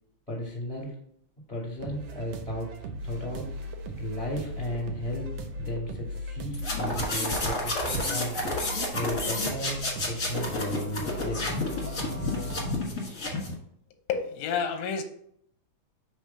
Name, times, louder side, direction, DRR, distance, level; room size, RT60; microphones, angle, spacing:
voice 1, 0.3-1.0 1.5-3.5 4.0-8.4 8.9-11.5, equal, 5° left, -3 dB, 1.3 m, -35 dB
sound 1, 1.8-12.8, equal, 75° right, 1.5 m, -38 dB
sound 2, 6.5-13.5, left 2 dB, 40° left, 1.2 m, -30 dB
sound 3, 10.1-12.7, right 1 dB, 35° right, 1.3 m, -43 dB
voice 2, 14.1-15.0, left 6 dB, 75° left, 6 dB, 1.6 m, -29 dB
4.9 x 3.7 x 5.5 m, 0.67 s
omnidirectional pair, 3.7 m